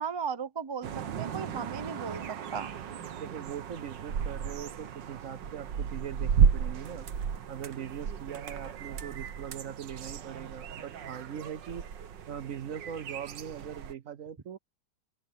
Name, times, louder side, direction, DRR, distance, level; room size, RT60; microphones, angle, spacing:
voice 1, 0.0-2.2 2.5-2.7, right 6 dB, 25° right, 0.5 m, -36 dB
sound 1, 0.8-13.9, right 7 dB, 85° right, 1.8 m, -33 dB
voice 2, 3.2-7.1 7.5-11.9 12.3-14.6, right 9 dB, 60° right, 1.0 m, -41 dB
open air
omnidirectional pair, 1.9 m